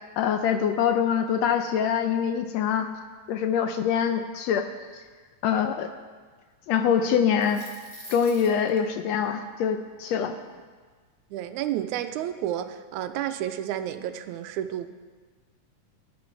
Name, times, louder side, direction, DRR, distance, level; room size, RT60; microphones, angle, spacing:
voice 1, 0.2-2.9 3.3-4.7 5.4-5.9 6.7-7.7 8.1-10.3, left 7 dB, 75° left, 7 dB, 1.6 m, -24 dB
sound 1, 7.3-8.8, equal, 15° left, 1.7 m, -45 dB
voice 2, 11.3-14.9, right 11 dB, 90° right, 9 dB, 2.0 m, -31 dB
12.5 x 11.5 x 4.6 m, 1.5 s
omnidirectional pair, 3.4 m